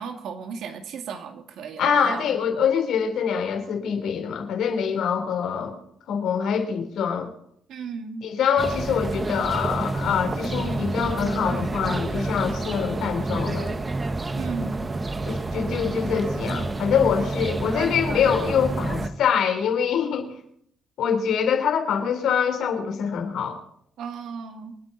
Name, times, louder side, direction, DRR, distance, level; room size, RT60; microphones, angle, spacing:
voice 1, 0.0-2.3 7.7-8.2 14.3-14.9 24.0-24.7, right 5 dB, 75° right, 5 dB, 2.4 m, -35 dB
voice 2, 1.8-5.8 6.1-7.3 8.2-13.7 15.3-20.3 21.0-23.6, left 7 dB, 75° left, 5 dB, 3.6 m, -24 dB
sound 1, 8.6-19.1, right 2 dB, 25° right, 1.4 m, -28 dB
27.5 x 9.7 x 4.2 m, 0.68 s
cardioid pair, 90°, 0 cm